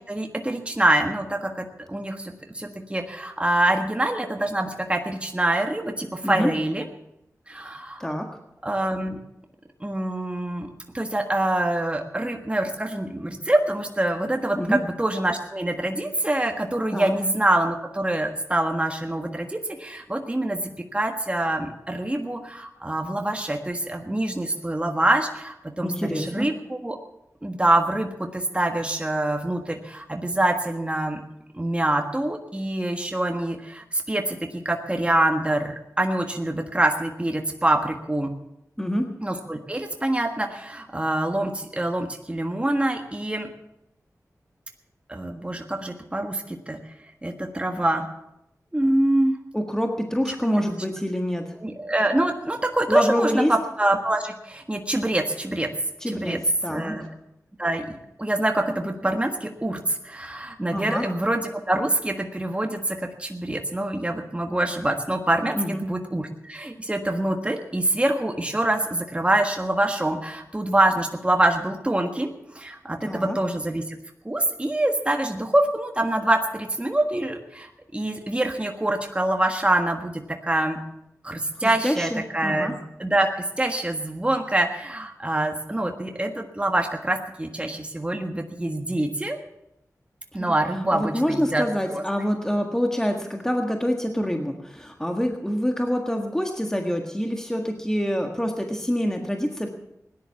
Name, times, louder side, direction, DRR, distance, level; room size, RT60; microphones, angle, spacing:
voice 1, 0.1-6.8 7.5-8.1 8.6-9.2 9.8-10.7 10.9-20.6 20.9-27.0 27.4-31.2 31.5-38.3 39.2-43.5 45.1-46.9 47.2-48.1 48.7-49.4 51.5-55.7 56.1-56.4 56.7-57.1 57.6-74.0 74.2-80.8 81.2-89.4 90.3-92.0, right 1 dB, 20° right, 4 dB, 1.5 m, -25 dB
voice 2, 25.8-26.5 38.8-39.1 49.5-51.5 52.9-53.5 56.0-56.4 56.6-57.0 60.7-61.1 65.5-65.8 73.0-73.4 81.6-82.7 90.4-90.6 90.9-99.7, equal, 10° left, 3 dB, 1.6 m, -26 dB
17.0 x 10.5 x 7.1 m, 0.84 s
wide cardioid pair, 60°, 6 cm